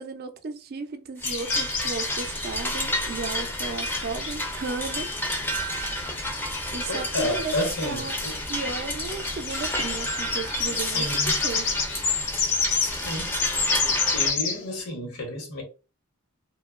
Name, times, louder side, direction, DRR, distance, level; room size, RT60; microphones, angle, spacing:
voice 1, 0.0-5.7 6.7-7.5 7.8-8.1 8.5-11.7, right 4 dB, 45° right, 0.4 m, -35 dB
sound 1, 1.2-4.6 5.0-5.1 5.8-14.6, left 5 dB, 60° left, 0.7 m, -29 dB
sound 2, 1.2-14.3, left 1 dB, 10° left, 0.4 m, -30 dB
voice 2, 6.8-8.3 10.8-11.3 12.8-13.3 13.8-15.6, left 1 dB, 85° left, 1.0 m, -31 dB
2.8 x 2.2 x 2.3 m
head